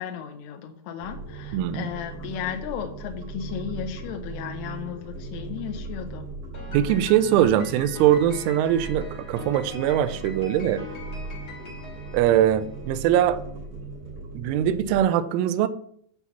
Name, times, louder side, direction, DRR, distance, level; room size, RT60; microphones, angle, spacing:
voice 1, 0.0-6.3, left 9 dB, 85° left, 4 dB, 3.2 m, -35 dB
sound 1, 1.0-15.0, right 3 dB, 50° right, 4.1 m, -38 dB
voice 2, 1.5-1.9 6.7-10.8 12.1-13.4 14.3-15.7, right 11 dB, 85° right, 12 dB, 3.1 m, -22 dB
Piano, 6.5-13.1, left 3 dB, 40° left, 1.6 m, -42 dB
9.5 x 4.2 x 7.0 m, 0.64 s
omnidirectional pair, 5.6 m